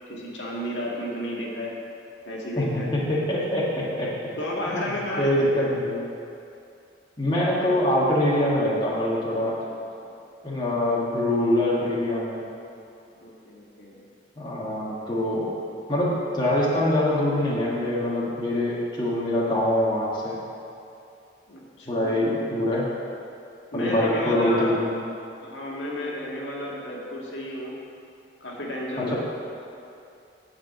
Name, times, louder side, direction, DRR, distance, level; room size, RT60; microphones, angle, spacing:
voice 1, 0.1-1.7 2.3-2.9 4.4-5.5 9.4-10.1 13.2-14.0 21.5-22.3 23.7-24.8 25.4-27.7 28.4-29.1, left 1 dB, 85° left, -4 dB, 1.8 m, -32 dB
voice 2, 2.5-4.1 4.7-4.8 5.1-6.0 7.2-9.6 10.4-12.4 14.4-15.5 15.9-20.4 21.9-22.9 23.7-24.9 29.0-29.1, left 1 dB, 25° left, -6 dB, 1.6 m, -24 dB
9.4 x 5.0 x 7.8 m, 2.6 s
head